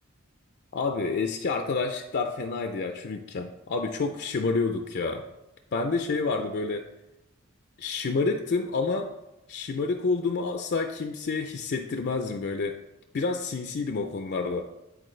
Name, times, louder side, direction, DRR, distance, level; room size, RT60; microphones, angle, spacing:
voice 1, 0.7-5.2 5.7-6.9 7.8-9.1 9.5-12.8 13.1-14.6, left 4 dB, 50° left, 5 dB, 0.4 m, -28 dB
10.0 x 4.2 x 3.2 m, 0.93 s
head